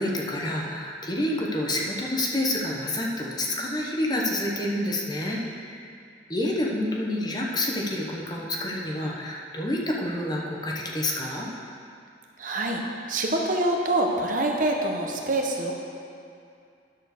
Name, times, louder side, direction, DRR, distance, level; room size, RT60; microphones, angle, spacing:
voice 1, 0.0-5.9 6.3-11.5, left 1 dB, 25° left, -2 dB, 0.9 m, -28 dB
voice 2, 12.4-12.8 13.1-15.7, right 1 dB, 50° right, 1 dB, 0.9 m, -25 dB
10.5 x 4.5 x 6.5 m, 2.5 s
head